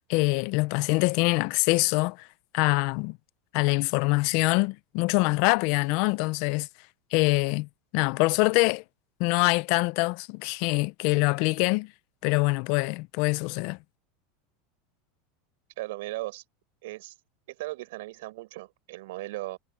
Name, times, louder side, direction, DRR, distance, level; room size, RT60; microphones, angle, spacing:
voice 1, 0.1-2.2 2.5-3.2 3.5-6.7 7.1-7.7 7.9-8.8 9.2-11.9 12.2-13.8, left 25 dB, 60° left, 0.6 m, -24 dB
voice 2, 15.8-16.4 16.8-17.1 17.5-19.6, right 19 dB, 75° right, 5.7 m, -37 dB
supercardioid pair, 125°, 0 cm